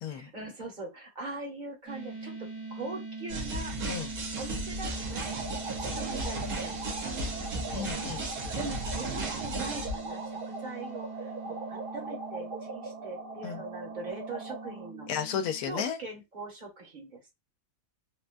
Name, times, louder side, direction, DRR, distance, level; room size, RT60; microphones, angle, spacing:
voice 1, 0.1-3.7 4.4-5.3 5.9-7.9 8.5-15.1 15.6-17.3, right 2 dB, 35° right, 1.0 m, -42 dB
sound 1, 1.9-15.7, right 3 dB, 10° right, 0.8 m, -43 dB
sound 2, 3.3-10.2, right 2 dB, 80° right, 1.3 m, -35 dB
sound 3, 4.9-14.9, right 3 dB, 60° right, 0.5 m, -41 dB
voice 2, 7.7-8.2 13.4-13.6 15.1-16.0, left 8 dB, 85° left, 1.1 m, -33 dB
3.7 x 2.2 x 2.5 m
omnidirectional pair, 1.6 m